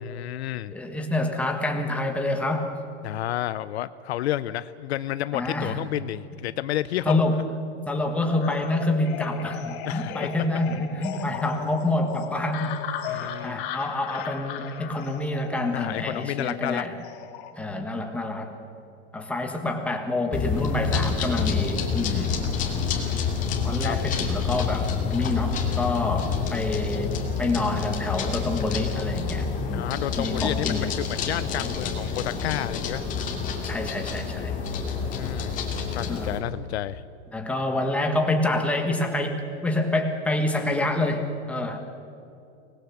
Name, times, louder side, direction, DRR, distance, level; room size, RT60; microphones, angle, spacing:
voice 1, 0.0-0.7 3.0-7.2 9.9-10.3 11.1-11.2 13.1-13.6 15.7-16.9 22.5-23.3 23.8-24.1 29.7-33.1 34.9-35.6 35.9-37.0, left 13 dB, 65° left, 15 dB, 0.7 m, -31 dB
voice 2, 0.7-2.8 5.3-5.8 7.0-7.4 7.9-12.8 13.1-17.0 17.6-18.5 19.1-22.4 23.6-29.9 30.2-30.9 33.6-34.5 36.1-36.3 37.3-41.8, left 2 dB, 5° left, 3 dB, 1.6 m, -27 dB
sound 1, 8.4-17.5, left 9 dB, 45° left, 2.1 m, -37 dB
sound 2, 20.3-36.4, left 5 dB, 20° left, 2.6 m, -28 dB
24.5 x 20.0 x 7.2 m, 2.7 s
supercardioid pair, 160°, 36 cm